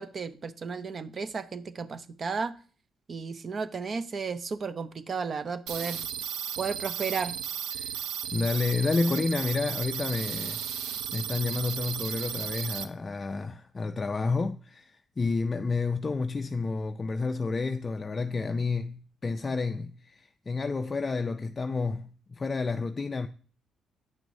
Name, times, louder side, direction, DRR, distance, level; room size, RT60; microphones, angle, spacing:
voice 1, 0.0-2.5 3.1-6.0 6.6-7.3, right 5 dB, 45° right, 0.6 m, -33 dB
sound 1, 5.7-12.8, right 9 dB, 90° right, 0.5 m, -35 dB
voice 2, 7.7-8.1 8.3-23.3, left 4 dB, 30° left, 0.3 m, -30 dB
8.9 x 6.1 x 2.6 m
cardioid pair, 90°, 0 cm